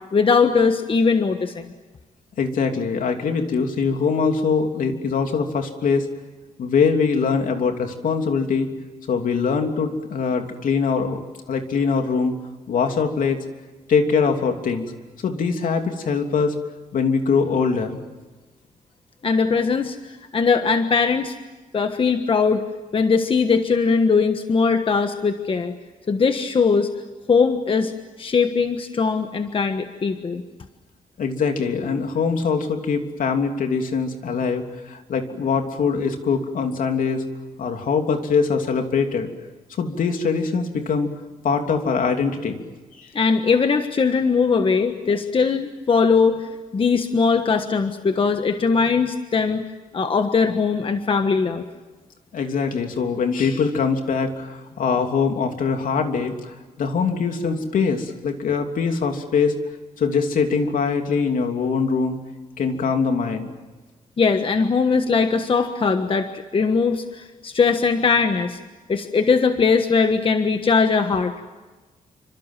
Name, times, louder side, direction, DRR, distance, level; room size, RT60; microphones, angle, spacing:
voice 1, 0.1-1.7 19.2-20.0 20.3-21.3 21.7-22.6 22.9-25.7 26.1-26.9 27.3-27.9 28.2-30.4 43.1-49.6 49.9-51.6 64.2-68.6 68.9-71.3, left 5 dB, 40° left, 7 dB, 1.4 m, -20 dB
voice 2, 2.4-6.1 6.6-8.7 9.1-11.2 11.5-12.3 12.7-13.4 13.9-14.9 15.2-16.5 16.9-18.0 31.2-37.2 37.6-39.3 39.8-41.1 41.4-42.7 43.0-43.1 52.3-59.5 60.0-62.2 62.6-63.5, left 5 dB, 75° left, 4 dB, 3.2 m, -22 dB
28.5 x 25.5 x 7.6 m, 1.2 s
wide cardioid pair, 130°, 14 cm